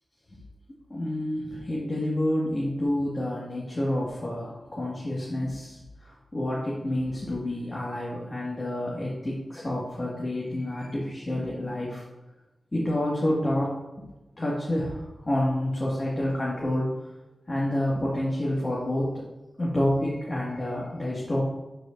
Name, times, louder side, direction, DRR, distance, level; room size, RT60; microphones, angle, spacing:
voice 1, 0.9-12.0 12.7-13.7 14.4-16.9 17.5-19.1 19.6-21.4, left 1 dB, 30° left, -6 dB, 1.8 m, -28 dB
11.5 x 4.9 x 2.6 m, 1.0 s
wide cardioid pair, 75°, 0 cm